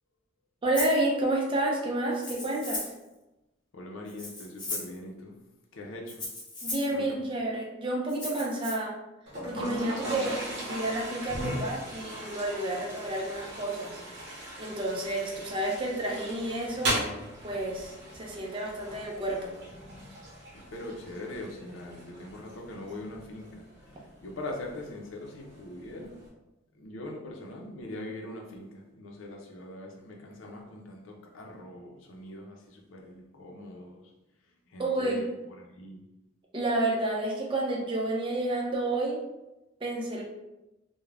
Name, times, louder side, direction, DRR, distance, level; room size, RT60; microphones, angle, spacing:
voice 1, 0.6-2.9 6.6-8.9 9.4-10.4 10.7-14.0 14.6-17.0 17.4-19.5 34.8-35.2 36.5-39.2 39.8-40.2, right 1 dB, 25° right, -2 dB, 0.5 m, -30 dB
Rattle (instrument), 0.7-1.0 2.1-3.0 4.1-5.0 6.1-6.9 8.1-8.7, left 2 dB, 20° left, 0.7 m, -37 dB
voice 2, 3.7-5.4 5.7-6.3 6.9-7.2 20.5-26.1 26.7-34.0 34.7-36.0, left 1 dB, 80° left, 1 dB, 0.5 m, -42 dB
Toilet flush, 9.3-26.3, right 1 dB, 60° right, 0.7 m, -39 dB
2.4 x 2.1 x 3.2 m, 0.98 s
head